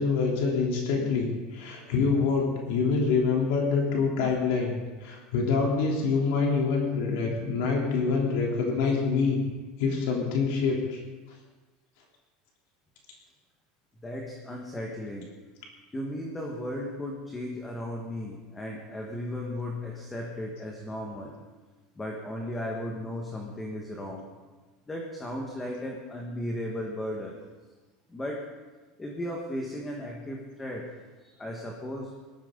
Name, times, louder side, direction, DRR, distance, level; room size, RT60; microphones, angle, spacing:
voice 1, 0.0-4.7 5.0-9.4 9.8-11.0, left 4 dB, 70° left, -1 dB, 3.6 m, -26 dB
voice 2, 14.0-15.3 15.9-21.3 21.9-24.3 24.9-27.3 28.1-28.5 29.0-30.9 31.2-32.1, left 1 dB, 10° left, 0 dB, 1.6 m, -35 dB
19.0 x 13.5 x 4.0 m, 1.3 s
supercardioid pair, 155°, 0 cm